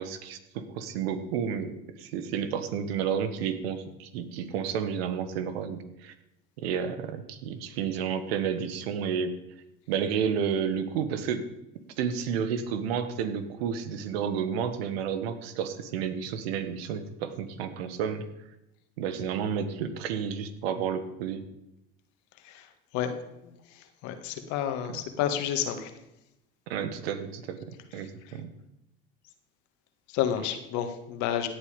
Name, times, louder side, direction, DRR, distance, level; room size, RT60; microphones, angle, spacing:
voice 1, 0.0-6.1 6.6-9.4 9.9-11.5 12.0-18.2 19.0-21.4 24.9-25.0 26.7-28.5, right 7 dB, 85° right, 11 dB, 1.4 m, -31 dB
voice 2, 23.4-25.9 28.3-28.4 30.1-31.5, left 10 dB, 70° left, 7 dB, 1.9 m, -30 dB
16.5 x 8.2 x 5.2 m, 0.88 s
supercardioid pair, 80°, 30 cm